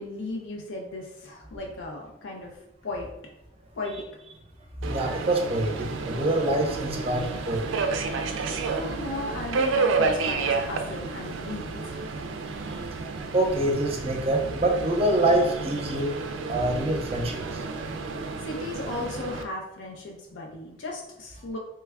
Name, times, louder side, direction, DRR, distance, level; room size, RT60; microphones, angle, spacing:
voice 1, 0.0-3.1 3.7-4.1 8.7-12.1 18.4-21.6, left 2 dB, 75° left, -1 dB, 0.5 m, -36 dB
voice 2, 4.8-8.7 12.5-12.8 13.3-16.1 16.5-17.6, right 1 dB, 30° right, 2 dB, 0.5 m, -26 dB
Subway metro underground, 4.8-19.4, right 4 dB, 85° right, 0.4 m, -31 dB
3.1 x 2.3 x 3.4 m, 0.84 s
head